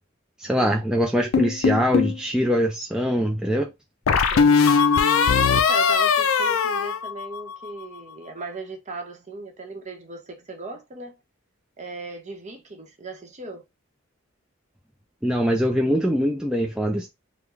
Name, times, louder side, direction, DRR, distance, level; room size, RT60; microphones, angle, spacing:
voice 1, 0.4-3.7 15.2-17.1, equal, 5° right, 0.3 m, -23 dB
sound 1, 1.3-2.2 4.1-7.7, left 6 dB, 75° left, 0.4 m, -20 dB
voice 2, 4.3-4.7 5.5-11.1 11.8-13.6, right 3 dB, 35° right, 0.8 m, -37 dB
3.6 x 2.1 x 3.1 m
head